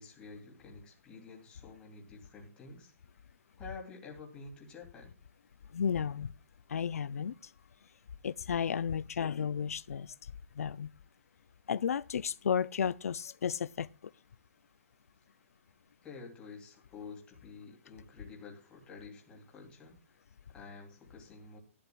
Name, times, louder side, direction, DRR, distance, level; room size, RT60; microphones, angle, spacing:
voice 1, 0.0-2.9 3.6-5.1 16.0-21.6, left 4 dB, 10° left, 2.8 m, -50 dB
voice 2, 5.7-6.3 6.7-7.3 8.2-10.1 10.6-10.9 11.7-13.9, left 7 dB, 90° left, 0.5 m, -33 dB
16.0 x 11.0 x 2.3 m
hypercardioid pair, 165°, 8 cm